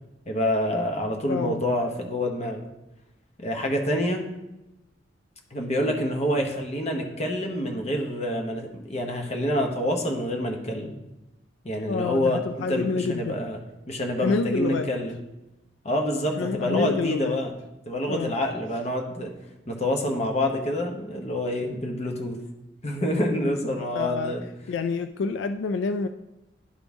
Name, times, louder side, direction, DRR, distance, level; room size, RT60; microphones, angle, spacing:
voice 1, 0.3-2.6 3.4-4.3 5.5-10.9 11.6-12.4 12.7-13.6 13.9-15.2 15.8-17.5 17.9-19.3 19.7-22.4 22.8-24.5, left 1 dB, 35° left, 2 dB, 1.0 m, -27 dB
voice 2, 1.3-1.6 11.9-13.4 14.2-14.9 16.4-17.4 18.1-18.3 23.9-24.3 24.7-26.1, left 4 dB, 80° left, 9 dB, 0.3 m, -27 dB
11.5 x 3.8 x 3.6 m, 0.96 s
head